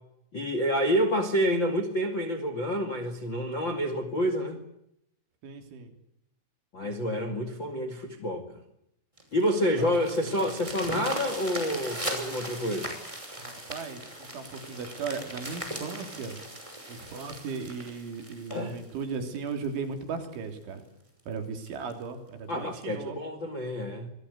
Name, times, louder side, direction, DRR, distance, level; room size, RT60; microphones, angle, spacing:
voice 1, 0.3-4.6 6.7-8.6 9.3-12.9 18.5-18.8 22.5-24.1, equal, 40° left, 8 dB, 1.8 m, -28 dB
voice 2, 5.4-5.9 13.4-16.4 16.9-20.8 21.3-23.2, right 5 dB, 65° right, 6 dB, 5.6 m, -37 dB
sound 1, 9.2-19.7 20.2-20.3 20.8-20.9 21.2-21.3 21.7-21.9 22.8-22.9, right 1 dB, 5° right, 5.4 m, -39 dB
27.5 x 20.0 x 8.2 m, 0.78 s
omnidirectional pair, 5.9 m